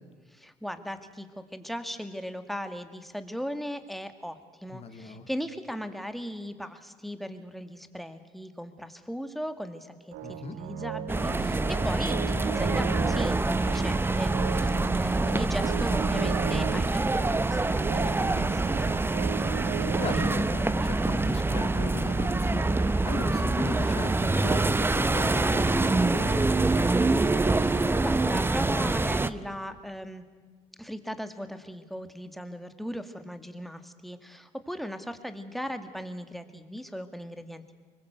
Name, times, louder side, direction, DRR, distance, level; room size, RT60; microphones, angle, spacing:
voice 1, 0.3-18.9 27.5-30.2 30.8-37.7, equal, ahead, 9 dB, 2.0 m, -38 dB
voice 2, 4.7-5.3 10.2-10.5 19.8-26.5, left 4 dB, 45° left, 7 dB, 2.9 m, -37 dB
sound 1, 10.1-24.2, right 11 dB, 75° right, 0.9 m, -38 dB
sound 2, 11.1-29.3, right 2 dB, 15° right, 0.8 m, -25 dB
24.0 x 21.0 x 8.0 m, 1.4 s
supercardioid pair, 80°, 15 cm